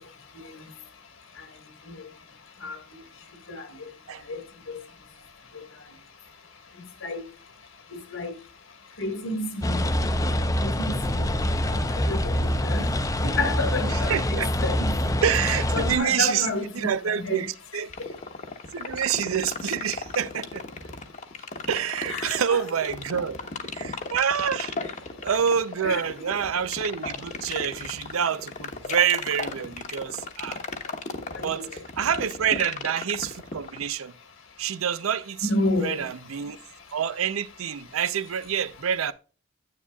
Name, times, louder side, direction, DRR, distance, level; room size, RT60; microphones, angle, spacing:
voice 1, 9.0-9.8 10.6-11.2 12.1-12.9 13.2-14.9 15.7-17.4 22.1-22.6 25.8-26.0 31.3-31.6 35.4-36.0, left 2 dB, 70° left, 1.6 m, -30 dB
sound 1, 9.6-16.0, left 1 dB, 15° left, 0.5 m, -25 dB
voice 2, 13.9-14.5 15.2-17.9 18.7-20.6 21.7-24.7 25.2-30.6 31.4-31.6 32.0-34.1 34.6-35.5 35.8-36.6 36.9-39.1, right 8 dB, 85° right, 0.5 m, -27 dB
sound 2, 17.9-33.9, left 4 dB, 35° left, 1.0 m, -34 dB
9.7 x 8.4 x 2.3 m
head